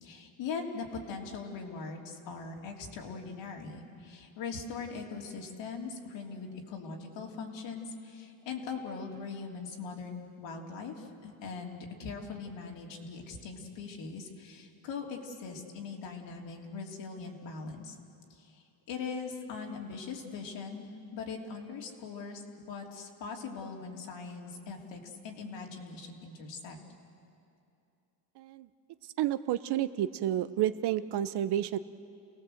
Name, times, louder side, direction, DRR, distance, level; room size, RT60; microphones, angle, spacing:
voice 1, 0.0-18.0 18.3-26.8, left 5 dB, 65° left, 0 dB, 3.2 m, -41 dB
voice 2, 28.4-28.7 29.2-31.8, right 12 dB, 55° right, 13 dB, 0.8 m, -30 dB
29.0 x 18.0 x 7.9 m, 2.6 s
cardioid pair, 110°, 47 cm